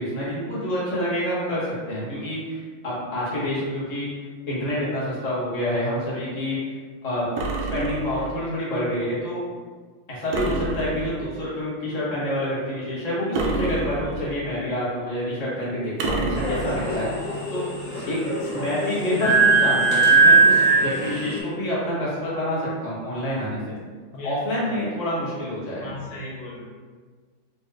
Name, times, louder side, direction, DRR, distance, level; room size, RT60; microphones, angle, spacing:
voice 1, 0.0-4.1 4.5-6.8 7.0-7.3 7.7-9.4 10.1-17.6 18.1-18.2 18.5-23.7 24.2-26.0, left 1 dB, 25° left, -8 dB, 0.9 m, -27 dB
sound 1, 7.4-8.4 10.3-11.4 13.3-14.5 16.0-17.1, right 3 dB, 85° right, 0.8 m, -29 dB
sound 2, 16.4-21.4, right 3 dB, 65° left, 2.0 m, -20 dB
voice 2, 24.1-24.6 25.8-26.6, left 1 dB, 85° left, -4 dB, 1.8 m, -36 dB
4.2 x 3.2 x 2.3 m, 1.5 s
omnidirectional pair, 2.3 m